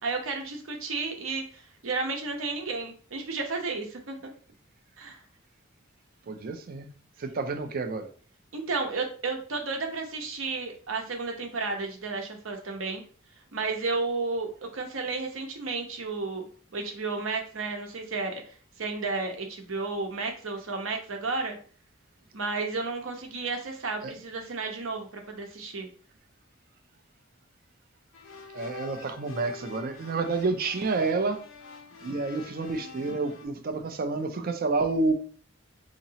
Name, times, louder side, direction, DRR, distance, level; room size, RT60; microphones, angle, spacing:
voice 1, 0.0-4.2 5.0-5.2 8.5-13.0 13.5-16.4 16.7-21.6 22.3-25.9, right 3 dB, 75° right, 3 dB, 0.8 m, -32 dB
voice 2, 6.3-6.9 7.2-8.1 24.0-24.1 28.5-31.4 32.0-35.1, right 3 dB, 45° right, 8 dB, 0.4 m, -29 dB
sound 1, 28.1-33.5, left 4 dB, 80° left, 0.8 m, -46 dB
3.9 x 2.9 x 2.8 m, 0.42 s
head